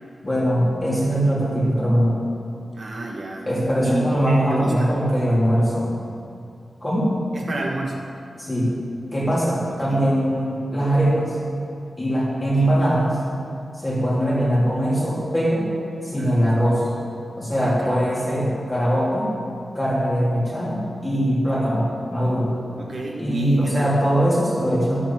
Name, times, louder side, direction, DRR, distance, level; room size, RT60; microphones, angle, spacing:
voice 1, 0.2-2.2 3.5-5.9 6.8-7.1 8.4-8.7 9.1-11.4 12.0-13.2 13.7-15.7 16.0-16.8 17.4-19.3 19.7-22.5 23.2-25.0, equal, 20° left, -6 dB, 3.5 m, -21 dB
voice 2, 2.8-3.5 3.8-4.9 7.3-8.0 9.9-10.0 12.6-12.7 16.2-16.6 17.6-18.2 22.8-23.9, right 2 dB, 50° right, -1 dB, 1.4 m, -30 dB
12.5 x 8.8 x 7.5 m, 2.5 s
wide cardioid pair, 165°, 0 cm